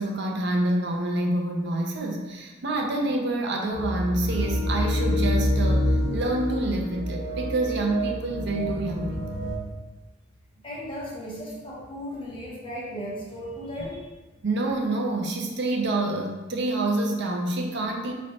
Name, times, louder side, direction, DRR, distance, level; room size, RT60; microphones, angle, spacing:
voice 1, 0.0-9.2 14.4-18.1, right 2 dB, 60° right, 1 dB, 0.6 m, -27 dB
sound 1, 3.7-9.6, equal, 55° left, 1.1 m, -27 dB
voice 2, 10.6-14.1, equal, 25° left, -5 dB, 1.0 m, -36 dB
5.1 x 3.2 x 2.8 m, 1.2 s
head